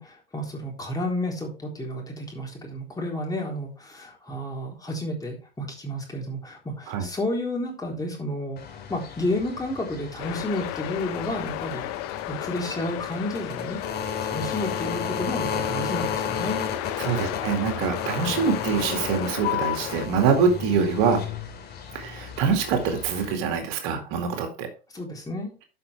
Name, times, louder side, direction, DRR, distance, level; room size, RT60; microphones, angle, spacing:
voice 1, 0.0-8.6 8.9-11.9 12.3-16.6 24.9-25.5, left 1 dB, 10° left, -1 dB, 3.8 m, -31 dB
sound 1, 8.6-23.3, left 7 dB, 30° left, 2.9 m, -34 dB
sound 2, 10.2-20.0, left 14 dB, 50° left, 1.1 m, -33 dB
voice 2, 17.0-21.2 21.9-24.7, right 6 dB, 55° right, 5 dB, 2.2 m, -24 dB
12.5 x 5.8 x 3.4 m, 0.33 s
hypercardioid pair, 95°, 30 cm